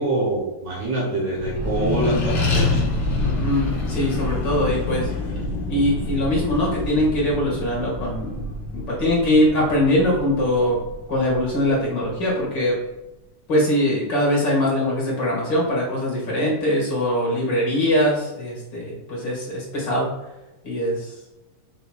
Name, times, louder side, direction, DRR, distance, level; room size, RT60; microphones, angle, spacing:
voice 1, 0.0-2.8, right 1 dB, 65° right, -5 dB, 2.5 m, -25 dB
Accelerating revving vroom, 1.3-12.3, left 2 dB, 50° left, 1.5 m, -27 dB
voice 2, 3.2-5.1 5.7-8.5 8.7-10.8 11.1-12.8 13.5-20.1 20.6-21.1, left 1 dB, 35° left, -4 dB, 2.4 m, -22 dB
6.6 x 6.0 x 2.5 m, 0.96 s
omnidirectional pair, 3.7 m